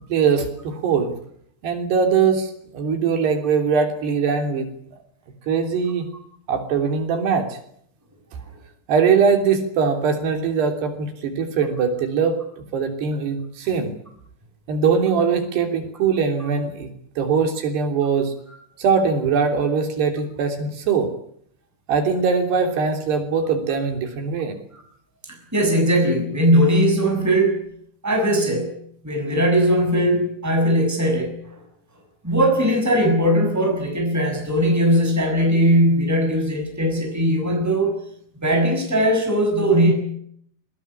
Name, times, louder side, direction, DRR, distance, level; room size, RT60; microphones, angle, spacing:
voice 1, 0.1-1.1 1.6-4.7 5.5-6.1 6.5-7.6 8.9-14.0 14.7-16.9 17.2-18.3 18.8-21.1 21.9-24.6, right 6 dB, 90° right, 5 dB, 5.4 m, -21 dB
voice 2, 25.5-27.6 28.0-28.7 29.0-31.3 32.2-37.9 38.4-39.9, equal, 5° right, 3 dB, 6.4 m, -19 dB
22.5 x 20.5 x 9.9 m, 0.68 s
omnidirectional pair, 4.6 m